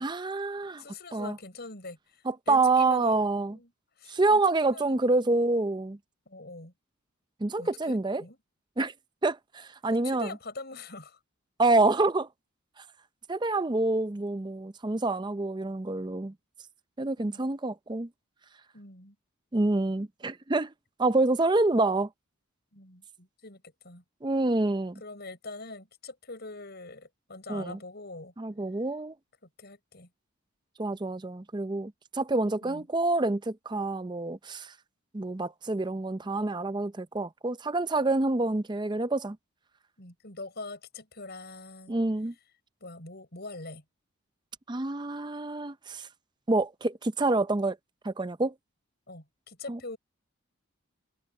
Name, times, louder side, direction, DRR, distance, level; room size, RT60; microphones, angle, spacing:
voice 1, 0.0-0.8 1.1-1.4 2.3-3.6 4.1-6.0 7.4-8.2 8.8-8.9 9.2-10.3 11.6-12.3 13.3-16.3 17.0-18.1 19.5-20.7 21.0-22.1 24.2-25.0 27.5-27.8 28.4-29.1 30.8-34.7 35.1-39.4 41.9-42.3 44.7-46.1 46.5-47.8 48.0-48.5 49.7-49.8, right 2 dB, 20° right, 0.5 m, -27 dB
voice 2, 0.8-3.2 3.5-3.7 4.0-5.4 6.2-6.7 7.6-8.4 9.9-11.2 17.2-17.4 18.7-19.1 22.7-24.0 25.0-28.3 29.6-30.1 32.6-32.8 40.0-41.9 42.8-43.8 49.1-50.0, left 3 dB, 50° left, 6.7 m, -43 dB
head